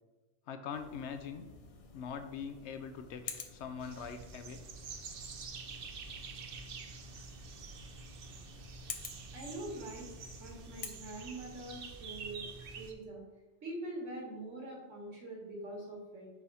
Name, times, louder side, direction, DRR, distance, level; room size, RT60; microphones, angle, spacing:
voice 1, 0.5-1.5 1.9-4.6, left 6 dB, 75° left, 8 dB, 0.9 m, -42 dB
sound 1, 0.7-10.9, left 5 dB, 45° left, 0.5 m, -50 dB
sound 2, 3.8-12.9, right 4 dB, 55° right, 0.8 m, -47 dB
voice 2, 9.3-10.1 10.4-13.2 13.6-16.3, right 1 dB, 90° right, -2 dB, 2.1 m, -44 dB
4.7 x 4.3 x 5.5 m, 1.1 s
omnidirectional pair, 1.2 m